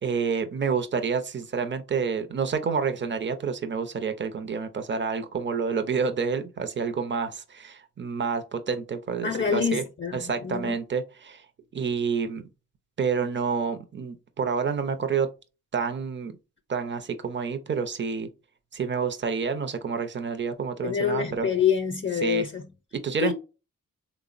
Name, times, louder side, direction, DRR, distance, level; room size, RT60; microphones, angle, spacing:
voice 1, 0.0-9.8 10.1-11.4 11.7-12.5 13.0-15.3 15.7-16.4 16.7-18.3 18.7-21.5 22.2-22.5 22.9-23.3, right 5 dB, 35° right, 0.5 m, -28 dB
voice 2, 9.2-10.7 20.8-22.7 23.2-23.3, left 7 dB, 40° left, 0.6 m, -26 dB
3.3 x 2.0 x 2.4 m
cardioid pair, 45°, 32 cm